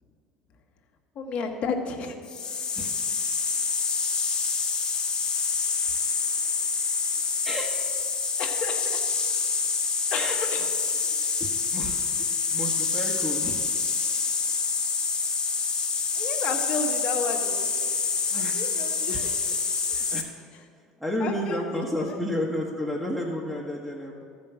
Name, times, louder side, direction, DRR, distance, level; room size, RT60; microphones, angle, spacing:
voice 1, 1.1-2.1 8.4-9.0 10.1-10.7 16.1-17.6 18.3-19.3 21.2-22.1, left 5 dB, 55° left, 3 dB, 1.5 m, -32 dB
sound 1, 2.3-20.2, left 5 dB, 30° left, 1.5 m, -27 dB
voice 2, 11.4-13.7 18.3-18.6 19.1-19.3 19.9-20.3 21.0-24.2, equal, ahead, -3 dB, 1.5 m, -32 dB
13.5 x 5.3 x 7.3 m, 2.1 s
hypercardioid pair, 85°, 2 cm